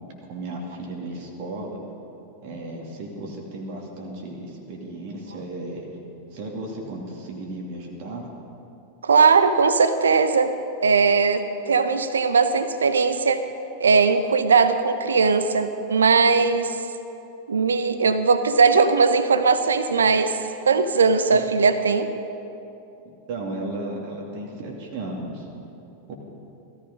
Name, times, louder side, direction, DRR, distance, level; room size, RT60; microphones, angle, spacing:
voice 1, 0.0-1.8 2.4-5.9 6.3-8.3 21.3-21.4 23.3-25.5 26.1-26.2, right 2 dB, 45° right, -1 dB, 2.6 m, -34 dB
voice 2, 9.0-10.5 10.8-13.4 13.8-16.8 17.5-20.4 20.7-22.1, right 5 dB, 70° right, 11 dB, 0.9 m, -19 dB
17.5 x 14.0 x 5.4 m, 2.8 s
figure-of-eight pair, 90°, 0 cm